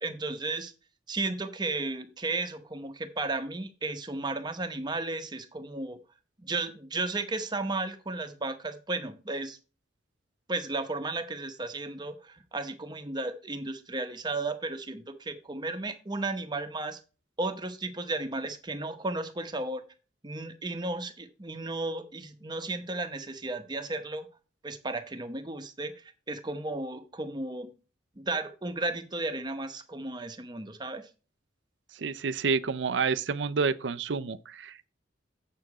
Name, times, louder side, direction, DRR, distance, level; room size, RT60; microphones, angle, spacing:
voice 1, 0.0-0.7 1.1-6.0 6.5-9.6 10.5-17.0 17.4-19.8 20.2-24.3 24.6-27.7 28.2-31.1, right 2 dB, 25° right, 0.9 m, -34 dB
voice 2, 32.0-34.9, right 5 dB, 65° right, 0.5 m, -29 dB
7.6 x 6.8 x 4.8 m
head